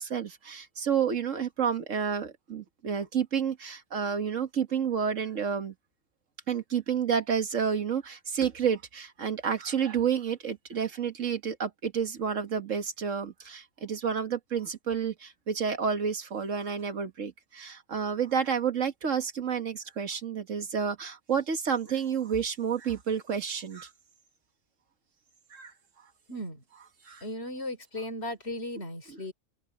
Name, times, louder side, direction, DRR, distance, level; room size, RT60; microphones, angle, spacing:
voice 1, 0.0-5.7 6.5-23.9 25.5-25.7 27.1-27.2, right 7 dB, 80° right, 1.9 m, -30 dB
voice 2, 26.3-26.6 27.2-29.3, left 1 dB, 55° left, 3.8 m, -36 dB
open air
omnidirectional pair, 1.3 m